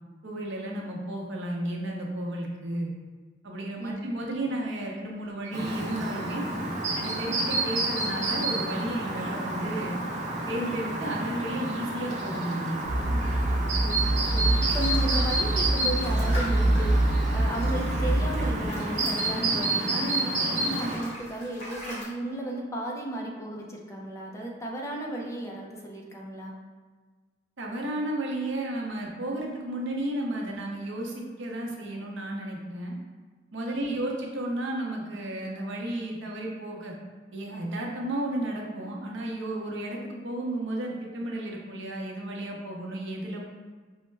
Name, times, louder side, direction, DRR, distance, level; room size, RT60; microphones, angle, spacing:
voice 1, 0.2-2.9 3.4-6.4 6.9-10.0 10.5-12.9 27.6-33.0 33.5-36.9 37.3-43.4, right 1 dB, 80° right, -1 dB, 0.7 m, -33 dB
voice 2, 3.8-4.2 13.8-14.0 14.3-26.5 33.7-33.8, right 1 dB, 15° left, -2 dB, 0.5 m, -34 dB
Chirp tweet, 5.5-21.0, right 2 dB, 40° right, 0.6 m, -30 dB
sound 1, 12.8-18.7, right 1 dB, 80° left, 1.0 m, -25 dB
sound 2, 14.5-20.1 20.5-22.0, equal, 35° left, 1.4 m, -42 dB
5.4 x 2.1 x 3.2 m, 1.4 s
head